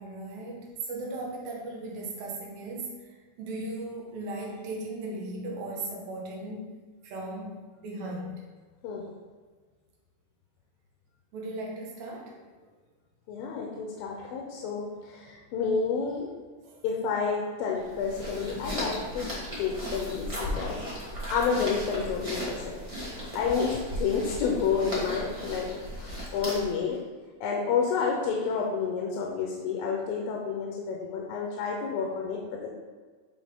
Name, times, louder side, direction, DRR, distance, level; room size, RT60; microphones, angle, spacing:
voice 1, 0.0-6.8 7.0-8.4 11.3-12.4 15.2-15.3 16.7-16.8, right 2 dB, 80° right, -1 dB, 2.9 m, -37 dB
voice 2, 13.3-16.3 16.8-19.2 19.6-20.8 21.3-25.7 26.0-27.0 27.4-32.7, left 5 dB, 85° left, -1 dB, 2.6 m, -30 dB
sound 1, 17.8-26.8, equal, 50° right, 0.4 m, -36 dB
10.0 x 3.7 x 3.6 m, 1.4 s
omnidirectional pair, 4.1 m